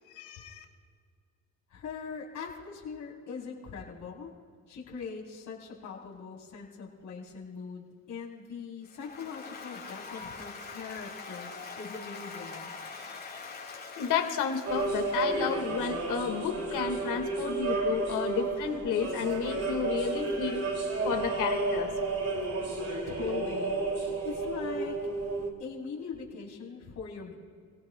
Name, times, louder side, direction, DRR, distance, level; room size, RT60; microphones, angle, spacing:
voice 1, 0.2-0.6 14.0-20.6 21.0-21.9, left 7 dB, 85° left, 5 dB, 1.7 m, -31 dB
voice 2, 1.7-4.3 4.7-12.7 23.1-23.8 24.2-24.9 25.6-27.3, left 5 dB, 70° left, -2 dB, 3.4 m, -41 dB
Applause, 8.9-16.1, left 4 dB, 35° left, 4.3 m, -44 dB
sound 1, 14.6-25.5, right 3 dB, 55° right, 2.5 m, -32 dB
28.0 x 17.5 x 2.2 m, 2.2 s
cardioid pair, 90°, 30 cm